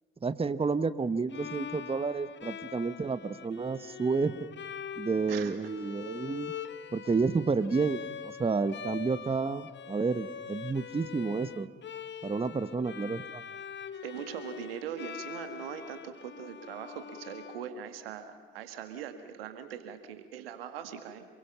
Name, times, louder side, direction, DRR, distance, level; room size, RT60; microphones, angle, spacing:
voice 1, 0.2-4.5 5.0-6.5 6.9-11.7 12.2-13.4, right 4 dB, 20° right, 14 dB, 1.0 m, -30 dB
Bowed string instrument, 1.3-18.2, left 8 dB, 40° left, 1.1 m, -43 dB
voice 2, 14.0-21.3, right 8 dB, 80° right, 9 dB, 1.6 m, -41 dB
28.0 x 22.0 x 5.8 m, 1.4 s
figure-of-eight pair, 45°, 29 cm